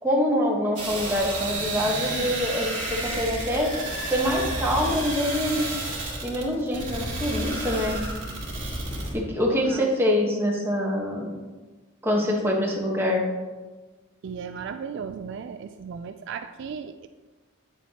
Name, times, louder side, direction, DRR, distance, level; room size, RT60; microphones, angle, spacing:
voice 1, 0.0-3.7 4.1-5.8 6.2-8.0 9.1-11.3 12.0-13.2, equal, 10° right, -2 dB, 1.2 m, -25 dB
sound 1, 0.8-9.1, right 2 dB, 40° right, 2.2 m, -31 dB
voice 2, 14.2-17.1, right 6 dB, 60° right, 9 dB, 0.3 m, -36 dB
8.4 x 7.3 x 2.9 m, 1.3 s
head